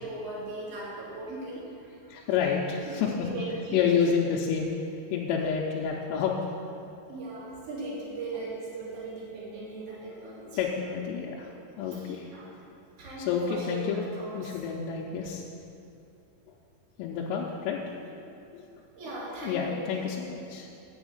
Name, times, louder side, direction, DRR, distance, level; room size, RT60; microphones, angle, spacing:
voice 1, 0.0-1.9 2.9-4.1 5.4-5.5 7.1-10.6 11.9-12.5 13.0-14.6 19.0-19.8, right 2 dB, 40° right, -8 dB, 2.8 m, -38 dB
voice 2, 2.1-3.3 3.7-4.7 5.1-6.3 10.0-10.2 10.6-11.5 11.8-12.3 13.2-14.0 14.3-15.4 17.0-17.9 18.2-18.6 19.0-20.7, left 7 dB, 90° left, -3 dB, 3.3 m, -29 dB
7.4 x 7.1 x 7.8 m, 2.6 s
omnidirectional pair, 5.9 m